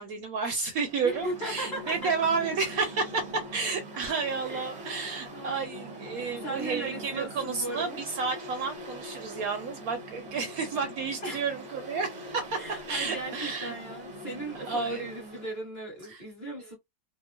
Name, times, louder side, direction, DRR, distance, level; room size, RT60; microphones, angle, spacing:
voice 1, 0.0-12.6 12.9-13.7 14.5-15.0 16.0-16.2 16.6-16.8, right 4 dB, 70° right, 0.9 m, -31 dB
Mechanical fan, 0.7-15.6, equal, 40° right, 0.6 m, -43 dB
voice 2, 1.0-2.1 4.4-4.6 5.3-5.7 6.4-8.0 11.2-11.4 12.5-16.8, right 1 dB, 30° left, 1.1 m, -37 dB
2.9 x 2.0 x 2.3 m
omnidirectional pair, 1.8 m